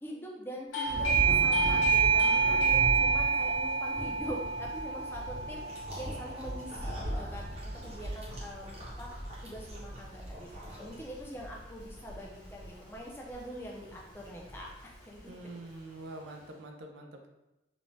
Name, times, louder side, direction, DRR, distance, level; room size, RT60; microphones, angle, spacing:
voice 1, 0.0-9.1 9.4-10.5 10.8-15.6, equal, 10° left, -2 dB, 0.3 m, -44 dB
Doorbell, 0.7-7.2, right 5 dB, 85° left, 0.5 m, -28 dB
Thunder / Rain, 0.8-16.4, equal, 65° left, 0.8 m, -40 dB
sound 1, 5.6-11.3, equal, 30° right, 0.6 m, -48 dB
voice 2, 15.3-17.3, right 2 dB, 85° right, 3 dB, 0.4 m, -45 dB
2.5 x 2.1 x 3.1 m, 0.96 s
head